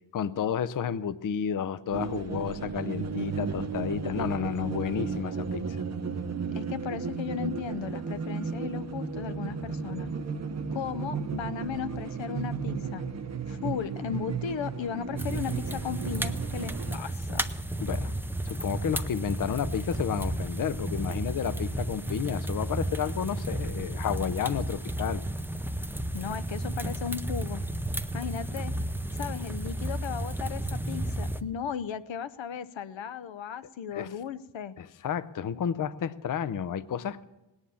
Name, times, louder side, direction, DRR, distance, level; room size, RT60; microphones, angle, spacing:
voice 1, 0.1-5.8 17.8-18.1 18.5-25.2 33.9-34.1 34.8-37.2, left 8 dB, 45° left, 16 dB, 0.5 m, -31 dB
sound 1, 1.9-17.0, right 5 dB, 35° right, 0.8 m, -34 dB
voice 2, 6.5-10.1 10.7-13.0 13.5-17.5 26.1-27.6 28.1-28.7 29.1-34.7, left 8 dB, 85° left, 14 dB, 0.7 m, -36 dB
sound 2, 15.2-31.4, right 1 dB, 5° right, 0.5 m, -33 dB
18.5 x 9.7 x 7.0 m, 1.1 s
wide cardioid pair, 150°, 44 cm